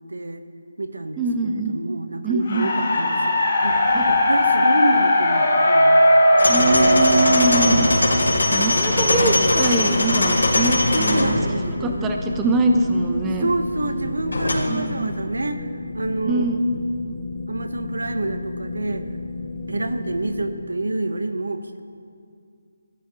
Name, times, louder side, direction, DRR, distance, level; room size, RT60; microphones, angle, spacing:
voice 1, 0.1-0.4 0.8-3.8 4.1-6.1 6.6-7.3 9.1-9.7 10.9-12.2 13.4-15.7 15.9-16.6 17.5-19.0 19.7-21.8, right 2 dB, 85° right, 9 dB, 0.9 m, -28 dB
voice 2, 1.2-1.8 2.2-2.7 3.9-4.0 6.5-7.9 8.5-11.4 11.7-13.5 14.7-15.1 16.3-16.6, right 2 dB, 10° right, 3 dB, 0.5 m, -23 dB
sound 1, 2.4-8.6, left 1 dB, 35° left, 3.0 m, -18 dB
sound 2, 3.6-4.3 6.5-20.5, left 3 dB, 10° left, 3.4 m, -33 dB
sound 3, 6.4-14.5, left 2 dB, 90° left, 2.8 m, -22 dB
15.5 x 12.5 x 2.9 m, 2.3 s
figure-of-eight pair, 170°, 0 cm